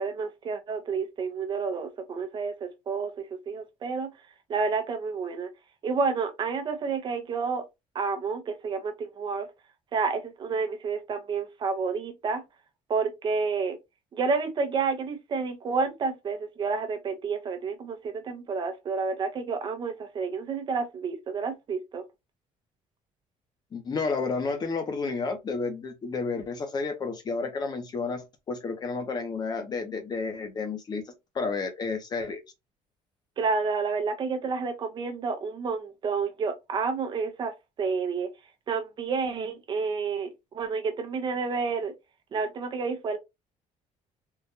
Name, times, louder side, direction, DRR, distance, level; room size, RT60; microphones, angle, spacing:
voice 1, 0.0-4.1 4.5-5.5 5.8-7.6 7.9-9.5 9.9-12.4 12.9-13.8 14.1-22.0 33.4-38.3 38.7-41.9 42.3-43.2, right 4 dB, 35° right, 0.8 m, -30 dB
voice 2, 23.7-31.0 31.3-32.4, left 4 dB, 30° left, 0.9 m, -31 dB
3.8 x 2.5 x 2.7 m
cardioid pair, 145°, 13 cm